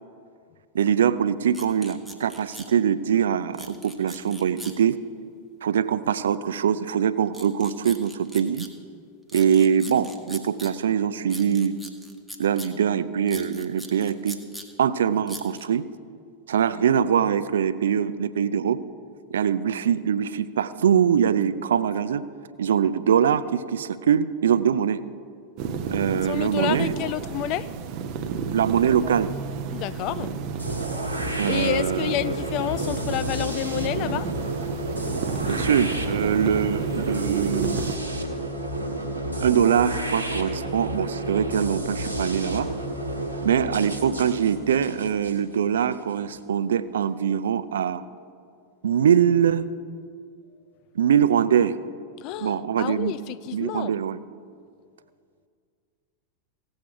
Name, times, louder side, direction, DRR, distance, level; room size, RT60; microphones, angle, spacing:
voice 1, 0.7-5.0 5.6-8.7 9.3-11.8 12.4-14.4 14.8-15.9 16.5-18.8 19.3-22.3 22.6-25.0 25.9-26.9 28.5-29.3 31.4-32.1 35.5-37.8 38.9-39.1 39.4-42.7 43.4-48.0 48.8-49.7 51.0-51.8 52.4-53.1 53.5-54.2, right 8 dB, 65° right, 0.4 m, -23 dB
sound 1, 1.5-2.7 3.5-4.8 7.3-8.7 9.3-10.7 11.3-12.7 13.3-14.7 15.3-15.7, equal, ahead, 1.1 m, -40 dB
sound 2, 25.6-38.0, right 6 dB, 45° right, 0.8 m, -32 dB
voice 2, 26.2-27.7 29.7-30.3 31.5-34.3 52.2-53.9, left 13 dB, 40° left, 0.3 m, -29 dB
sound 3, 30.6-46.4, right 1 dB, 85° right, 1.4 m, -31 dB
16.5 x 7.9 x 4.6 m
figure-of-eight pair, 90°, 0 cm